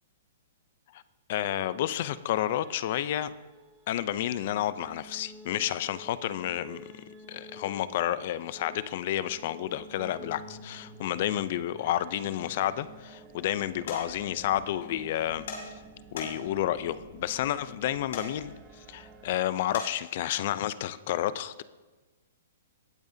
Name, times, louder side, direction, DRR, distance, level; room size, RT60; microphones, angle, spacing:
voice 1, 1.3-3.3 3.9-15.5 16.1-21.6, left 12 dB, 45° left, 15 dB, 0.5 m, -30 dB
sound 1, 1.4-19.4, right 2 dB, 15° right, 0.9 m, -50 dB
sound 2, 13.9-14.0 15.5-15.6 16.2-16.6 18.1-18.3 19.7-19.9, left 4 dB, 70° left, 3.7 m, -36 dB
19.0 x 8.9 x 2.8 m, 1.2 s
hypercardioid pair, 155°, 0 cm